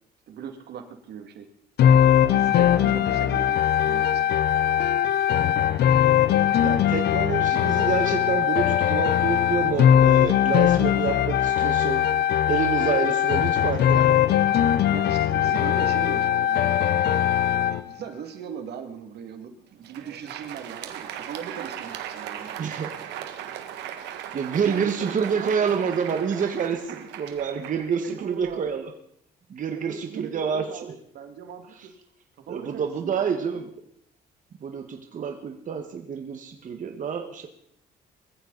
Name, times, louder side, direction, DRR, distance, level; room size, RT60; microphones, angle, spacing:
voice 1, 0.3-1.5 2.1-4.3 14.8-17.2 17.7-22.8 24.6-26.4 28.0-28.7 29.7-31.9 32.5-33.6, right 7 dB, 70° right, 6 dB, 2.3 m, -39 dB
sound 1, 1.8-17.8, left 10 dB, 70° left, 0.7 m, -20 dB
voice 2, 6.6-12.0 12.5-14.3 22.6-22.9 24.3-28.9 29.5-30.9 31.8-31.9 32.5-33.7 34.6-37.5, right 6 dB, 50° right, 4 dB, 1.6 m, -28 dB
Crowd, 19.7-28.7, right 10 dB, 90° right, 1.8 m, -38 dB
21.0 x 15.0 x 4.0 m, 0.72 s
cardioid pair, 100°, 17 cm